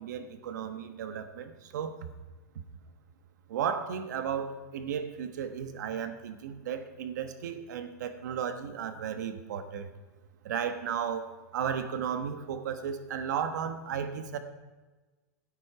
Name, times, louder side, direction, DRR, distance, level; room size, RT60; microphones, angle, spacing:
voice 1, 0.0-2.0 3.5-9.9 10.4-14.4, right 8 dB, 80° right, 9 dB, 1.1 m, -34 dB
12.5 x 9.6 x 4.7 m, 1.2 s
supercardioid pair, 130°, 9 cm